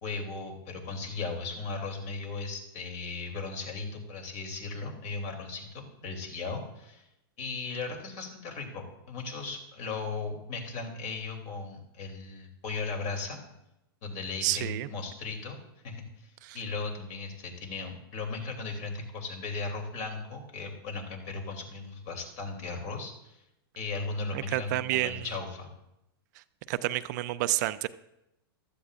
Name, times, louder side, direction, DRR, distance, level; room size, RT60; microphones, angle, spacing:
voice 1, 0.0-7.0 7.4-13.4 14.0-15.6 15.8-23.4 23.7-25.7, left 4 dB, 50° left, 2 dB, 3.1 m, -37 dB
voice 2, 14.4-14.9 16.4-16.6 24.3-25.2 26.7-27.9, right 16 dB, 50° right, 13 dB, 0.5 m, -29 dB
15.5 x 13.0 x 2.5 m, 0.87 s
hypercardioid pair, 135°, 12 cm